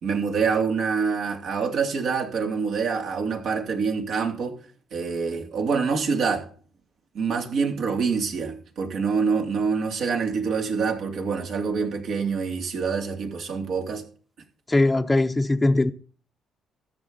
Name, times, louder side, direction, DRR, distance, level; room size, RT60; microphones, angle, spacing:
voice 1, 0.0-4.6 4.9-6.4 7.1-14.0, right 5 dB, 70° right, 2.9 m, -26 dB
voice 2, 14.7-15.9, left 2 dB, 15° left, 0.7 m, -20 dB
13.5 x 9.3 x 4.0 m
cardioid pair, 90°, 0 cm